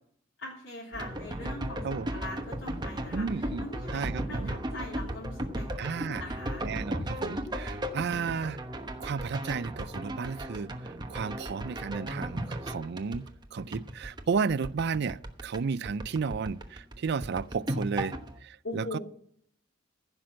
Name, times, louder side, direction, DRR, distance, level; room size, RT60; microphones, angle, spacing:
voice 1, 0.4-6.6 18.6-19.0, left 2 dB, 80° left, 3.3 m, -42 dB
sound 1, 0.9-15.6 15.8-18.3, right 1 dB, 25° right, 1.0 m, -36 dB
voice 2, 3.1-4.5 5.8-6.2 6.6-8.6 9.0-10.7 11.1-13.3 13.5-19.0, right 5 dB, 60° right, 0.4 m, -33 dB
15.5 x 6.0 x 7.6 m
head